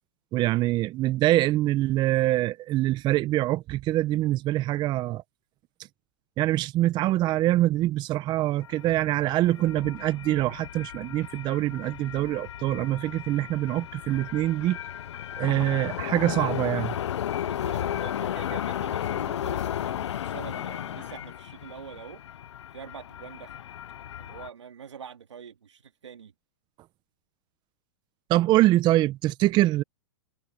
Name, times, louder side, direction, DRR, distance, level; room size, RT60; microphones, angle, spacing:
voice 1, 0.3-5.2 6.4-14.8 15.4-17.0 28.3-29.8, right 15 dB, 30° right, 0.9 m, -24 dB
sound 1, 8.6-24.5, left 10 dB, 80° left, 0.7 m, -34 dB
voice 2, 17.4-22.2 22.7-23.6 24.2-26.3, right 7 dB, 90° right, 2.5 m, -45 dB
hypercardioid pair, 125°, 15 cm